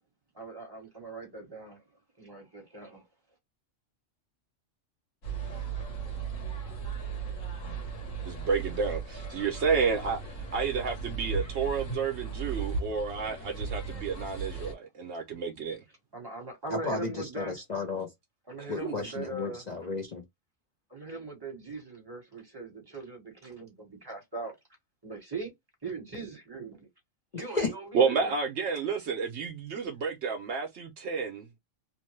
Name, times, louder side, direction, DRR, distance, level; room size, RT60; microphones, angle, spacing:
voice 1, 0.3-3.0 16.1-17.6 18.5-19.6 20.9-24.5 25.0-25.5 25.8-26.9 27.3-28.3, right 3 dB, 20° right, 1.2 m, -40 dB
sound 1, 5.2-14.7, right 5 dB, 80° left, 1.5 m, -36 dB
voice 2, 8.2-10.2 10.5-15.8 18.6-18.9 27.9-31.5, right 5 dB, 65° right, 0.9 m, -30 dB
voice 3, 16.7-18.1 18.7-20.2 27.5-27.7, left 4 dB, 40° left, 0.8 m, -33 dB
2.9 x 2.1 x 3.1 m
omnidirectional pair, 1.3 m